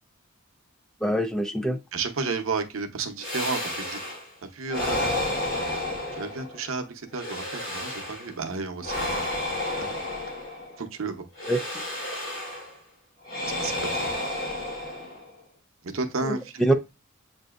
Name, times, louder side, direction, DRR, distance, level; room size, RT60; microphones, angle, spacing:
voice 1, 1.0-1.8 11.4-11.6 16.2-16.7, right 1 dB, 5° left, 5 dB, 0.3 m, -24 dB
voice 2, 1.9-4.0 4.4-5.1 6.2-9.8 10.8-11.3 13.6-14.1 15.9-16.6, right 4 dB, 90° right, 6 dB, 0.7 m, -32 dB
sound 1, 3.2-4.3 4.7-6.7 7.1-8.3 8.8-10.8 11.4-12.8 13.2-15.4, left 1 dB, 45° left, 1.9 m, -31 dB
7.6 x 2.6 x 2.3 m, 0.27 s
head